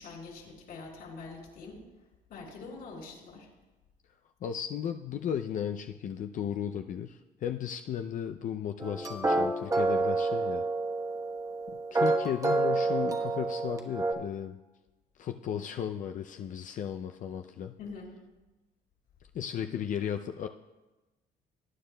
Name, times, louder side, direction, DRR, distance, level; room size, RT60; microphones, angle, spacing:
voice 1, 0.0-1.8 2.3-3.5 17.8-18.1, left 4 dB, 70° left, -1 dB, 3.9 m, -44 dB
voice 2, 4.4-10.6 11.9-14.6 15.2-17.7 19.3-20.5, left 9 dB, 50° left, 6 dB, 0.4 m, -35 dB
sound 1, 8.8-14.1, right 3 dB, 20° right, 1.1 m, -28 dB
19.0 x 9.4 x 2.2 m, 1.1 s
cardioid pair, 110°, 17 cm